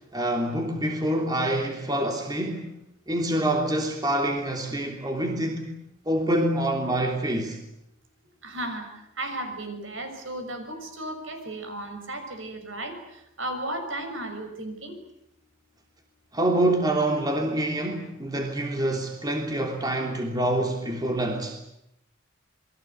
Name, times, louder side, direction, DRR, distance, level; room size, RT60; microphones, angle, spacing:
voice 1, 0.1-2.7 3.1-5.7 6.0-7.6 16.3-21.6, right 1 dB, 20° right, 3.1 m, -26 dB
voice 2, 8.4-8.9 9.2-13.0 13.4-14.9, right 1 dB, 70° right, 6.3 m, -34 dB
28.0 x 22.0 x 8.4 m
head